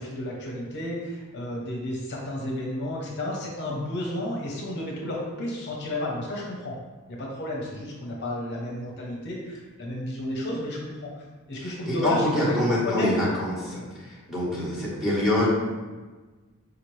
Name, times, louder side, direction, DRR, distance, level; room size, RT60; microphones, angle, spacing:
voice 1, 0.0-6.8 7.1-13.2, left 1 dB, 55° left, -2 dB, 0.7 m, -32 dB
voice 2, 11.9-13.8 14.3-15.5, left 1 dB, ahead, -8 dB, 1.2 m, -25 dB
5.0 x 2.8 x 3.1 m, 1.3 s
head